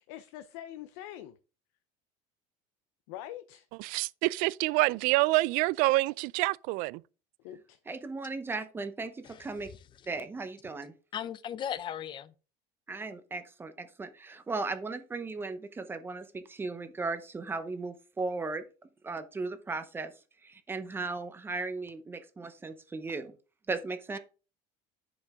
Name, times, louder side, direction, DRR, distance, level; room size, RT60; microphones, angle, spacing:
voice 1, 0.0-1.4 3.1-3.7 7.4-7.8, left 12 dB, 85° left, 0.7 m, -44 dB
voice 2, 3.8-7.0, right 21 dB, 65° right, 0.4 m, -27 dB
voice 3, 7.9-9.7 10.1-10.9 12.9-18.6 19.0-20.1 20.4-23.3 23.7-24.2, right 3 dB, 15° right, 0.8 m, -36 dB
voice 4, 11.1-12.3, left 9 dB, 30° left, 0.5 m, -37 dB
10.5 x 5.2 x 3.6 m
cardioid pair, 150°, 16 cm